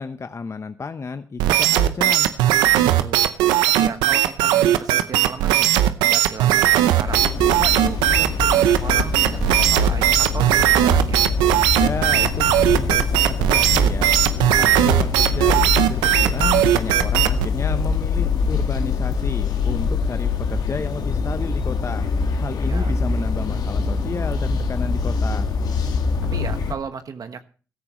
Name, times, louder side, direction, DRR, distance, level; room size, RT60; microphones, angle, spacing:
voice 1, 0.0-2.3 11.8-14.1 14.5-22.1 22.4-25.5, left 4 dB, 40° left, 9 dB, 0.9 m, -32 dB
sound 1, 1.4-17.5, right 12 dB, 90° right, 0.6 m, -18 dB
voice 2, 2.9-3.3 3.7-5.7 6.0-7.2 7.5-11.2 22.7-22.9 26.3-27.4, right 6 dB, 60° right, 9 dB, 1.2 m, -34 dB
sound 2, 7.1-26.7, left 4 dB, 70° left, 1.8 m, -24 dB
15.5 x 13.5 x 3.1 m, 0.38 s
supercardioid pair, 45°, 7 cm